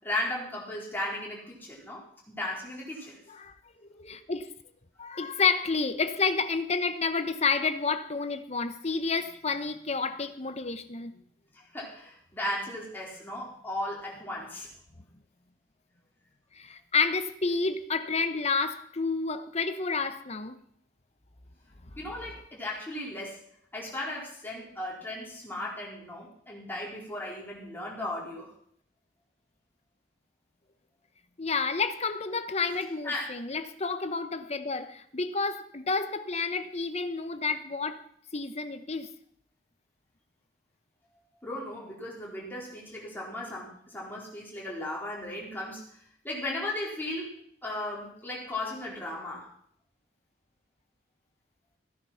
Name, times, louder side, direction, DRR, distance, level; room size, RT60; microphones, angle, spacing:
voice 1, 0.0-3.2 11.7-14.7 22.0-23.4 23.7-28.5 33.0-33.3 41.4-45.9 46.2-49.5, left 1 dB, 10° left, 4.3 m, -36 dB
voice 2, 3.9-4.5 5.0-11.2 16.5-20.6 31.4-38.0 38.3-39.1, left 4 dB, 35° left, 1.0 m, -30 dB
15.5 x 10.0 x 5.8 m
head